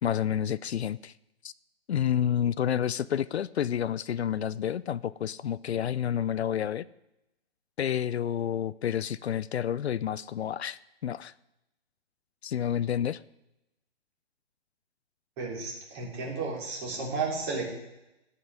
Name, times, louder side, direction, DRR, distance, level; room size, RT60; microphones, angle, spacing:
voice 1, 0.0-1.1 1.4-1.5 1.9-6.9 7.8-11.3 12.4-13.2, left 9 dB, 70° left, 18 dB, 0.6 m, -29 dB
voice 2, 15.4-17.7, right 4 dB, 20° right, -1 dB, 3.5 m, -33 dB
17.5 x 6.0 x 9.6 m, 0.92 s
hypercardioid pair, 170°, 33 cm